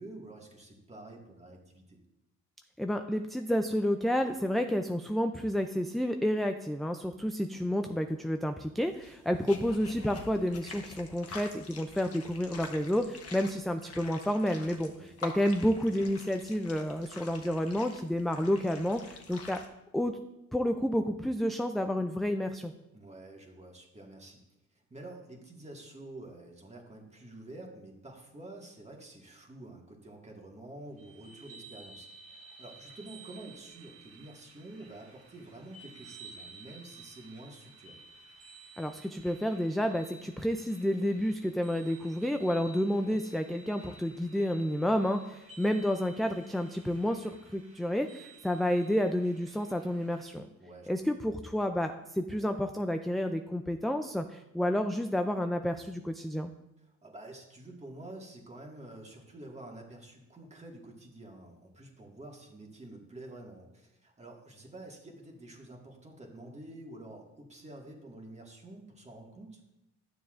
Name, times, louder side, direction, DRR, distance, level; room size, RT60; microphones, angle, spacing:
voice 1, 0.0-2.0 9.3-9.5 14.9-15.2 22.9-24.4 24.9-38.0 43.0-43.2 50.6-51.0 56.8-69.6, right 2 dB, 20° right, 0 dB, 1.7 m, -48 dB
voice 2, 2.8-19.6 19.9-20.2 20.5-22.7 38.8-50.5 50.9-56.5, equal, ahead, 6 dB, 0.3 m, -30 dB
sound 1, 8.8-19.7, left 4 dB, 50° left, 1.3 m, -47 dB
sound 2, 31.0-50.3, right 3 dB, 50° right, 1.6 m, -54 dB
11.5 x 6.9 x 2.5 m, 0.91 s
cardioid pair, 90°, 30 cm